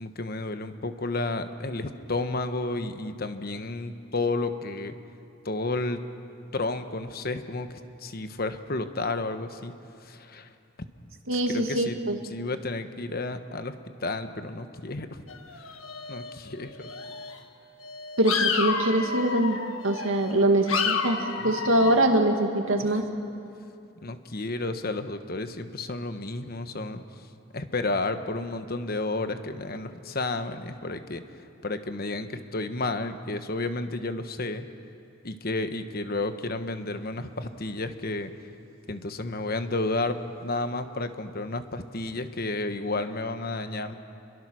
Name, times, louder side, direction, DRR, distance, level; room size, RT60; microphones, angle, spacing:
voice 1, 0.0-4.9 5.4-6.0 6.5-9.7 10.0-10.5 11.3-12.0 12.3-15.2 16.1-16.9 20.2-20.7 21.3-22.0 22.8-22.9 24.0-27.0 27.5-31.2 31.6-34.6 35.2-38.3 38.9-43.9, left 2 dB, 50° left, 9 dB, 1.2 m, -32 dB
voice 2, 11.3-12.2 18.2-19.6 19.8-21.2 21.4-23.0, right 1 dB, 80° right, 3 dB, 2.0 m, -23 dB
sound 1, 15.3-16.5 16.8-17.4 17.8-20.3 20.7-21.9, left 5 dB, 80° left, 1.6 m, -30 dB
28.5 x 23.0 x 6.3 m, 2.6 s
head